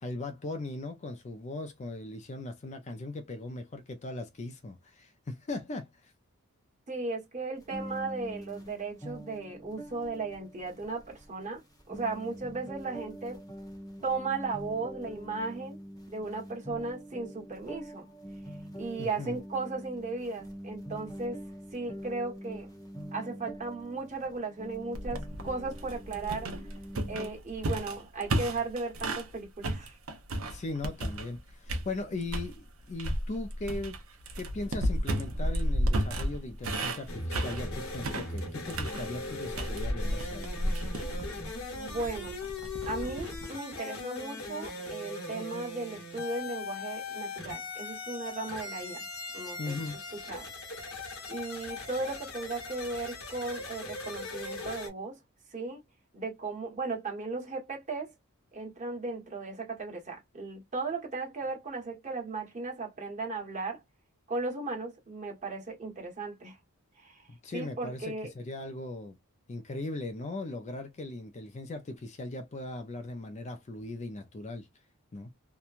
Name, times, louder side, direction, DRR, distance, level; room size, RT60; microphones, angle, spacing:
voice 1, 0.0-6.1 19.0-19.4 30.4-34.0 34.3-40.6 49.6-50.0 67.3-69.2 69.5-74.7 75.1-75.3, left 2 dB, 30° left, 0.4 m, -39 dB
voice 2, 6.9-13.4 14.0-15.8 16.1-18.1 18.7-21.4 21.7-22.7 23.1-26.5 27.1-30.0 41.7-42.4 42.9-49.1 49.3-49.7 50.1-50.5 51.3-55.2 55.5-55.8 56.1-58.1 58.5-63.8 64.3-66.6 67.0-68.3, right 3 dB, 30° right, 1.2 m, -36 dB
sound 1, 7.6-27.3, equal, 15° left, 0.9 m, -45 dB
sound 2, 24.9-29.3 29.6-31.4 31.7-32.5 33.0-43.5, right 1 dB, 65° right, 0.7 m, -33 dB
sound 3, 37.1-54.9, left 3 dB, 65° left, 1.2 m, -40 dB
2.9 x 2.2 x 2.4 m
head